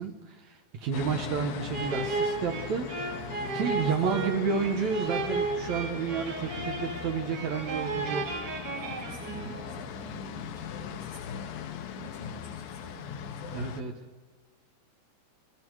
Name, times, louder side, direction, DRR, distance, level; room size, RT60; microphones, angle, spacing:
voice 1, 0.0-2.9 3.5-8.4 13.5-13.9, right 6 dB, 70° right, 4 dB, 1.7 m, -31 dB
sound 1, 0.9-13.8, left 9 dB, 70° left, 2.3 m, -40 dB
sound 2, 1.7-9.8, right 3 dB, 50° right, 1.9 m, -34 dB
voice 2, 3.1-4.1 8.7-11.6 11.9-13.7, equal, 45° left, -6 dB, 9.2 m, -46 dB
28.5 x 21.5 x 4.8 m, 1.3 s
omnidirectional pair, 5.1 m